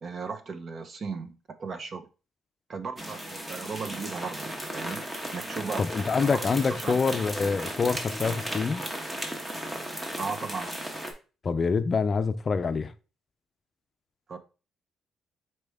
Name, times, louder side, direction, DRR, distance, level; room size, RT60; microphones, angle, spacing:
voice 1, 0.0-2.1 2.7-6.1 6.7-7.0 10.2-10.8 14.3-14.4, right 5 dB, 45° right, 0.7 m, -36 dB
sound 1, 3.0-11.1, right 1 dB, 20° right, 1.1 m, -35 dB
voice 2, 5.8-8.8 11.4-12.9, left 5 dB, 40° left, 0.4 m, -26 dB
4.3 x 3.1 x 3.5 m
cardioid pair, 90°, 0 cm